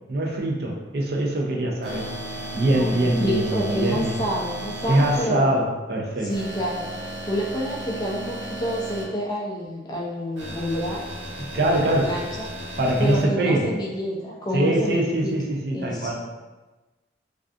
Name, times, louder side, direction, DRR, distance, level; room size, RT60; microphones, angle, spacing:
voice 1, 0.1-2.1 2.5-4.2 4.9-6.3 11.5-12.1 12.8-13.7 14.5-16.1, right 1 dB, 55° right, -1 dB, 0.4 m, -23 dB
sound 1, 1.8-5.2 6.3-9.0 10.4-13.2, right 1 dB, 80° right, 0.7 m, -35 dB
voice 2, 2.6-5.6 6.2-11.0 11.6-15.3 15.7-16.1, equal, 20° left, -3 dB, 0.3 m, -29 dB
2.4 x 2.3 x 2.4 m, 1.2 s
head